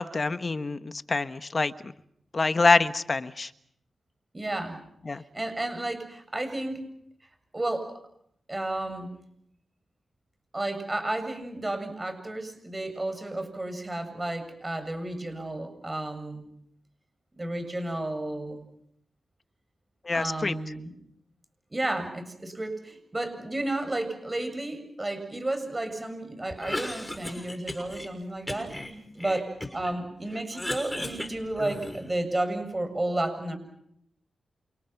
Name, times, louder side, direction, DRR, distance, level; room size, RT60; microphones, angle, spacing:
voice 1, 0.0-1.9 2.3-3.5 5.0-5.2 20.0-20.6, left 3 dB, 40° left, 11 dB, 1.3 m, -26 dB
voice 2, 4.3-4.8 5.3-6.8 7.5-7.9 8.5-9.1 10.5-16.4 17.4-18.6 20.1-20.9 21.7-28.7 29.2-33.6, right 1 dB, 25° right, 8 dB, 7.4 m, -32 dB
Cough, 26.5-28.1 28.5-29.9 30.3-32.2, left 1 dB, 10° left, 6.4 m, -36 dB
28.5 x 28.0 x 6.0 m, 0.71 s
cardioid pair, 80°, 0 cm